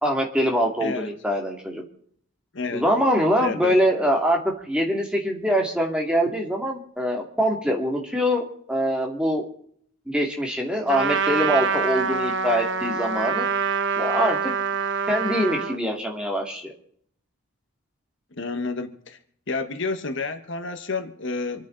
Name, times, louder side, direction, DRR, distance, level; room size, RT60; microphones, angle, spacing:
voice 1, 0.0-1.8 2.7-9.4 10.1-13.5 14.0-14.5 15.1-16.7, equal, 5° right, 1 dB, 2.3 m, -24 dB
voice 2, 0.8-1.1 2.5-2.8 3.4-3.8 18.3-19.2 19.5-21.7, left 3 dB, 55° left, 7 dB, 1.2 m, -30 dB
Trumpet, 10.9-15.8, right 5 dB, 55° right, 0.9 m, -25 dB
27.0 x 9.6 x 3.9 m, 0.63 s
head